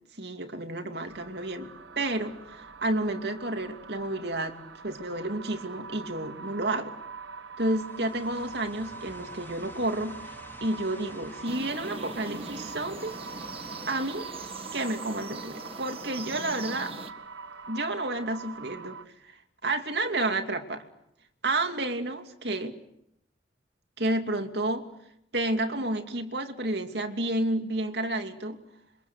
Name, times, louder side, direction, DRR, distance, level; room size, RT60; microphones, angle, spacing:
voice 1, 0.2-6.9 7.6-10.2 10.6-13.2 13.9-14.3 14.7-16.9 17.7-19.0 19.2-19.4 19.6-20.8 21.4-22.8 24.0-24.8 25.3-28.6, right 2 dB, 60° right, 2.8 m, -30 dB
sound 1, 1.1-19.1, right 5 dB, 80° right, 1.6 m, -44 dB
sound 2, 7.6-18.3, left 1 dB, 10° left, 3.0 m, -52 dB
sound 3, 11.5-17.1, right 3 dB, 30° right, 1.7 m, -41 dB
27.0 x 24.5 x 8.2 m
head